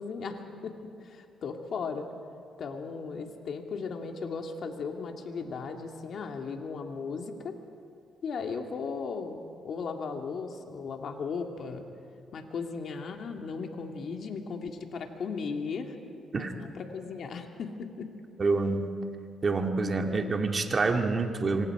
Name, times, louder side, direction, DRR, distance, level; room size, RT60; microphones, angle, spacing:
voice 1, 0.0-2.1 2.6-7.6 8.2-11.9 12.3-16.0 16.3-18.2, left 5 dB, 60° left, 3 dB, 2.3 m, -36 dB
voice 2, 18.4-18.9 19.4-21.7, right 3 dB, 35° right, 4 dB, 2.0 m, -27 dB
26.0 x 24.5 x 4.9 m, 2.4 s
cardioid pair, 90°, 0 cm